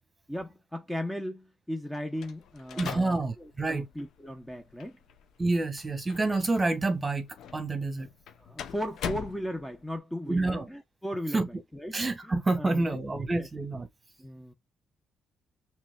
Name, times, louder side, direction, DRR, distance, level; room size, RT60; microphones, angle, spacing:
voice 1, 0.3-5.0 8.4-13.0 13.3-13.5 14.2-14.5, equal, 5° left, 0.8 m, -37 dB
sound 1, 2.2-10.0, left 8 dB, 75° left, 0.7 m, -43 dB
voice 2, 2.8-3.9 5.4-7.3 7.5-8.1 10.3-10.7 11.3-11.5 11.9-13.9, right 2 dB, 20° right, 1.5 m, -28 dB
5.9 x 3.3 x 2.3 m
cardioid pair, 90°, 0 cm